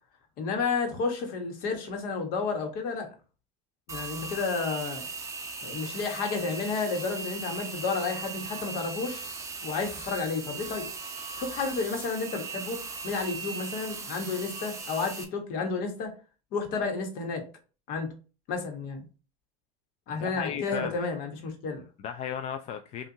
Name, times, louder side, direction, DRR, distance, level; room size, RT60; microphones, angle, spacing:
voice 1, 0.4-3.1 3.9-5.0 5.6-9.2 9.6-10.9 11.4-12.8 13.0-16.1 16.5-17.4 17.9-18.1 18.5-19.0 20.1-21.8, left 4 dB, 60° left, 1.2 m, -31 dB
sound 1, 3.9-15.2, right 4 dB, 20° right, 0.7 m, -38 dB
voice 2, 20.2-21.0 22.0-23.1, left 8 dB, 40° left, 0.4 m, -35 dB
5.5 x 2.5 x 2.7 m
supercardioid pair, 125°, 17 cm